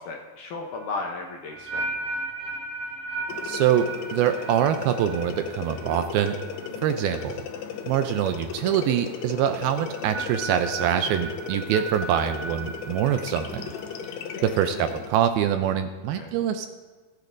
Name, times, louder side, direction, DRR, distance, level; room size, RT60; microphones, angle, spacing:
voice 1, 0.0-2.0 14.6-15.1 16.1-16.3, left 3 dB, 70° left, 0 dB, 2.0 m, -35 dB
sound 1, 0.7-7.9 8.1-8.5 9.8-14.4, right 3 dB, 55° right, 2.8 m, -36 dB
sound 2, 3.3-15.1, left 7 dB, 90° left, 3.0 m, -36 dB
voice 2, 3.4-3.9 4.1-6.4 6.8-7.4 7.9-13.7 14.4-16.7, right 10 dB, 80° right, 8 dB, 2.3 m, -24 dB
18.5 x 10.5 x 2.6 m, 1.5 s
omnidirectional pair, 4.6 m